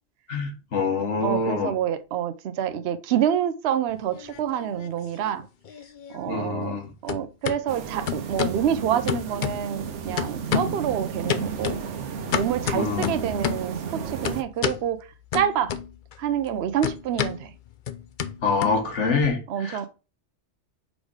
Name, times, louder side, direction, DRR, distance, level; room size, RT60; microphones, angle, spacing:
voice 1, 0.3-1.7 6.3-6.9 12.7-13.1 18.4-19.9, left 4 dB, 90° left, 1.7 m, -25 dB
voice 2, 1.2-5.5 6.1-11.8 12.3-15.7 16.2-17.5 19.5-19.9, right 9 dB, 65° right, 0.8 m, -27 dB
sound 1, 3.9-4.9 5.2-6.8 7.1-7.6 8.1-8.6 9.1-9.9 10.2-10.8 11.3-13.7 14.2-14.8 15.3-16.2 16.4-19.3, left 8 dB, 55° left, 0.7 m, -30 dB
sound 2, 7.7-14.4, right 6 dB, 85° right, 1.1 m, -33 dB
5.0 x 4.1 x 4.7 m
omnidirectional pair, 1.2 m